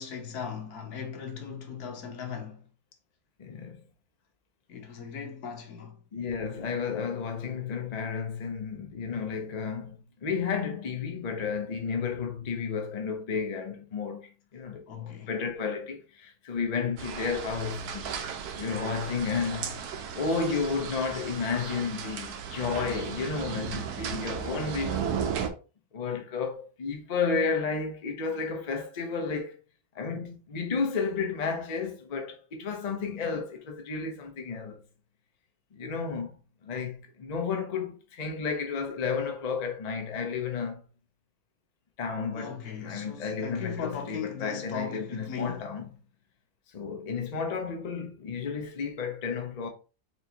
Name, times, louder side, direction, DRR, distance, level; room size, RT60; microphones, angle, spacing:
voice 1, 0.0-2.7 4.7-6.0 14.9-15.3 42.3-45.6, left 6 dB, 70° left, 1.3 m, -38 dB
voice 2, 3.4-3.8 6.1-18.2 18.6-19.8 20.1-25.0 25.9-29.6 29.9-34.8 35.7-36.3 36.6-40.8 42.0-45.8 46.7-49.7, left 5 dB, 50° left, 0.5 m, -32 dB
sound 1, 17.0-25.5, right 7 dB, 70° right, 1.1 m, -35 dB
4.3 x 3.2 x 2.8 m
omnidirectional pair, 1.8 m